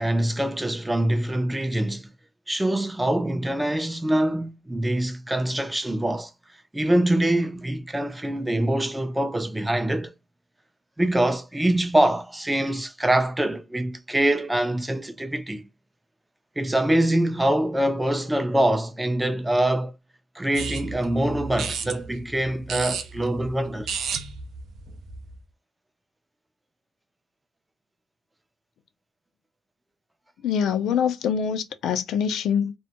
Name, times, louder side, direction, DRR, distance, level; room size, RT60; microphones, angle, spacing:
voice 1, 0.0-2.1 2.5-6.3 6.7-10.1 11.0-15.6 16.6-19.9 20.4-23.9, right 1 dB, 10° right, 0.4 m, -24 dB
sound 1, 20.5-25.4, right 5 dB, 75° right, 0.4 m, -34 dB
voice 2, 30.4-32.7, left 7 dB, 75° left, 0.4 m, -24 dB
2.1 x 2.0 x 2.8 m
cardioid pair, 90°, 0 cm